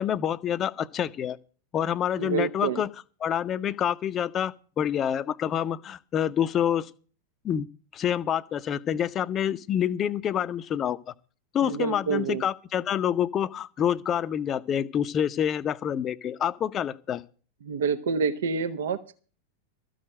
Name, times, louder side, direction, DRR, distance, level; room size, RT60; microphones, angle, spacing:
voice 1, 0.0-1.4 1.7-2.9 3.2-6.9 7.4-7.7 7.9-11.0 11.5-17.2, left 9 dB, 30° left, 0.7 m, -27 dB
voice 2, 2.1-2.8 11.6-12.4 17.6-19.1, right 5 dB, 60° right, 0.9 m, -28 dB
14.0 x 6.5 x 8.8 m
figure-of-eight pair, 90°, 0 cm